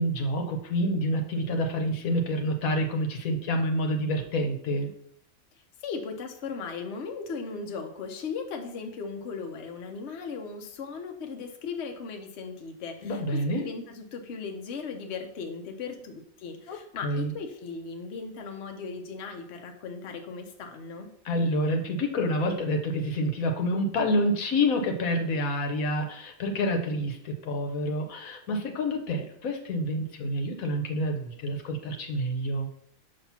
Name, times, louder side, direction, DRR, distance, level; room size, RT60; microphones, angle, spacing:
voice 1, 0.0-4.9 13.0-13.6 16.7-16.8 17.0-17.3 21.2-32.7, equal, 80° left, 4 dB, 1.3 m, -28 dB
voice 2, 5.8-21.1, left 5 dB, 60° left, 4 dB, 0.9 m, -37 dB
5.9 x 2.9 x 5.6 m, 0.68 s
omnidirectional pair, 1.5 m